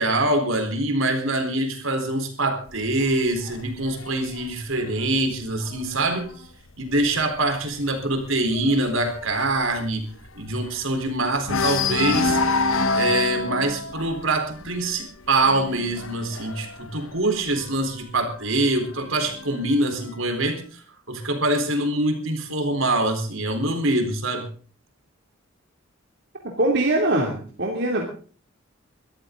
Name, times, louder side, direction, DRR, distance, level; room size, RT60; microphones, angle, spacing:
voice 1, 0.0-6.3 6.8-10.0 10.3-20.8 21.1-24.5, right 2 dB, 75° right, 5 dB, 4.1 m, -24 dB
sound 1, 2.7-6.3 6.7-7.0 7.3-7.4 7.8-11.0 11.4-18.0 18.8-19.8, left 3 dB, 80° left, 1.2 m, -28 dB
voice 2, 26.6-28.1, right 1 dB, 55° right, 0 dB, 2.9 m, -22 dB
22.0 x 13.5 x 3.9 m, 0.41 s
head